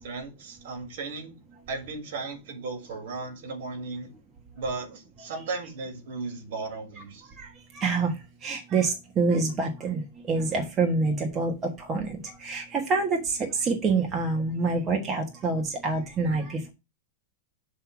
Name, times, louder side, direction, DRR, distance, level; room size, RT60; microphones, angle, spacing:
voice 1, 0.0-1.3 1.7-4.1 4.6-7.3, right 3 dB, 60° right, 2.5 m, -36 dB
voice 2, 7.4-8.1 8.4-10.0 10.3-16.7, right 4 dB, 20° right, 1.3 m, -27 dB
7.7 x 3.8 x 6.0 m
supercardioid pair, 150°, 0 cm